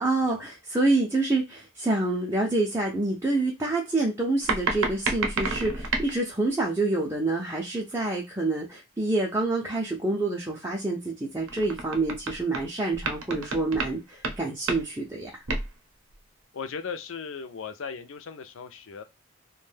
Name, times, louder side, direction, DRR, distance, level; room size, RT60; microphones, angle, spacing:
voice 1, 0.0-15.3, right 2 dB, 15° right, 0.4 m, -27 dB
sound 1, 4.4-6.2 11.5-12.7 12.9-14.0 14.2-14.4 14.7-15.0 15.5-15.7 16.1-16.2, right 3 dB, 65° right, 0.6 m, -30 dB
voice 2, 16.5-19.0, left 6 dB, 65° left, 0.4 m, -37 dB
2.5 x 2.2 x 3.3 m
head